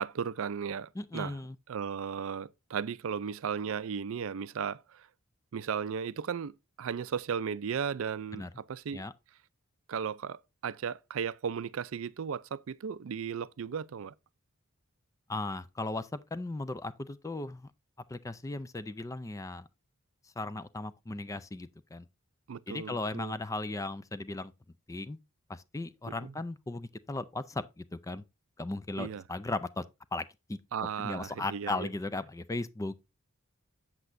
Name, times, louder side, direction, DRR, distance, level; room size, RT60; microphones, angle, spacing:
voice 1, 0.0-1.4 1.7-5.1 5.5-9.0 9.9-14.1 22.5-23.3 26.1-26.3 29.0-29.2 30.7-31.9, right 7 dB, 65° right, 0.4 m, -35 dB
voice 2, 1.0-1.6 8.3-8.5 8.9-9.1 15.3-17.7 18.1-19.7 20.4-22.1 22.7-24.5 24.9-25.2 25.5-28.2 28.6-29.8 30.1-30.6 31.0-32.9, left 2 dB, 15° left, 0.4 m, -37 dB
8.0 x 7.3 x 2.6 m
head